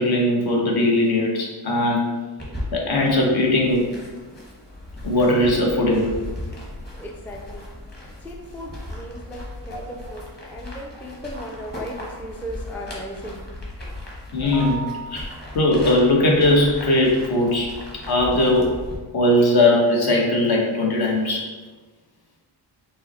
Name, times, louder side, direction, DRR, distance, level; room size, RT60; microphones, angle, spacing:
voice 1, 0.0-2.1 2.7-3.9 5.0-6.2 9.7-9.8 14.3-17.7 18.1-18.7 19.1-21.5, left 1 dB, 60° left, -1 dB, 1.0 m, -19 dB
sound 1, 2.4-19.0, left 1 dB, 20° left, 1.2 m, -37 dB
voice 2, 6.9-7.7 8.2-13.4, equal, 5° left, -1 dB, 0.4 m, -36 dB
5.4 x 2.1 x 4.1 m, 1.3 s
wide cardioid pair, 125°, 43 cm